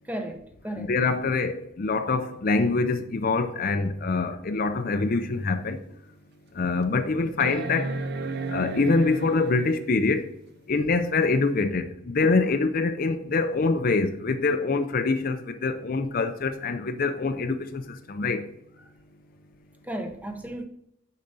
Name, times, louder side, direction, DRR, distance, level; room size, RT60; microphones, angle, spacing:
voice 1, 0.0-0.9 18.8-18.9 19.8-20.6, right 1 dB, 10° right, 0.6 m, -34 dB
voice 2, 0.8-5.8 6.6-7.9 8.5-10.3 10.7-17.8 18.1-18.4, left 3 dB, 45° left, 0.5 m, -25 dB
sound 1, 5.2-5.3 5.9-6.0 7.4-9.9 11.6-11.7, right 3 dB, 50° right, 0.5 m, -33 dB
6.7 x 6.4 x 4.0 m
head